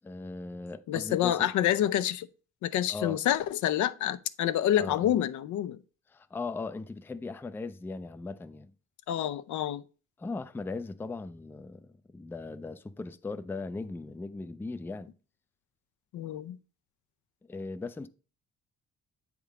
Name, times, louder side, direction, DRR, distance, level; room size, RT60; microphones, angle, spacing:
voice 1, 0.0-1.5 2.9-3.2 4.8-5.1 6.1-8.7 10.2-15.1 17.5-18.1, left 3 dB, 10° left, 0.3 m, -38 dB
voice 2, 0.9-2.3 2.6-5.8 9.1-9.8 16.1-16.6, left 11 dB, 75° left, 0.5 m, -28 dB
7.9 x 3.6 x 4.8 m
cardioid pair, 90°, 30 cm